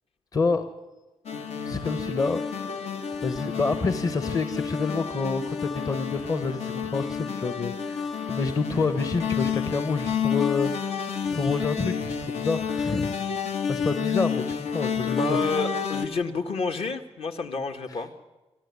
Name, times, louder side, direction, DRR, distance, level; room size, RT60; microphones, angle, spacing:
voice 1, 0.3-0.7 1.7-2.4 3.2-10.9 11.2-13.1 13.7-14.4 14.7-15.4 17.9-18.0, left 4 dB, 35° left, 10 dB, 1.0 m, -28 dB
sound 1, 1.3-16.1, left 6 dB, 85° left, 1.8 m, -30 dB
voice 2, 15.0-18.2, left 4 dB, 65° left, 5 dB, 1.8 m, -29 dB
27.5 x 12.5 x 9.6 m, 1.1 s
wide cardioid pair, 160°, 11 cm